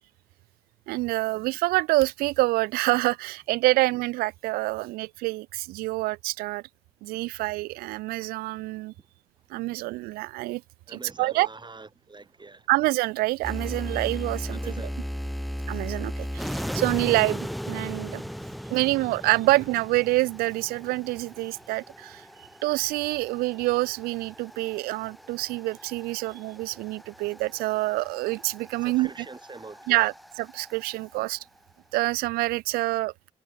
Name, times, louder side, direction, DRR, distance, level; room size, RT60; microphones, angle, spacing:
voice 1, 0.9-6.6 7.0-8.9 9.5-10.6 10.9-11.5 12.7-14.6 15.7-18.2 18.7-29.1 29.9-30.1 30.4-31.4 31.9-33.1, right 20 dB, 70° right, 0.5 m, -26 dB
voice 2, 10.9-12.7 14.5-15.0 28.8-30.1, right 3 dB, 30° right, 4.5 m, -44 dB
sound 1, 13.4-31.2, equal, ahead, 6.7 m, -37 dB
hypercardioid pair, 40°, 16 cm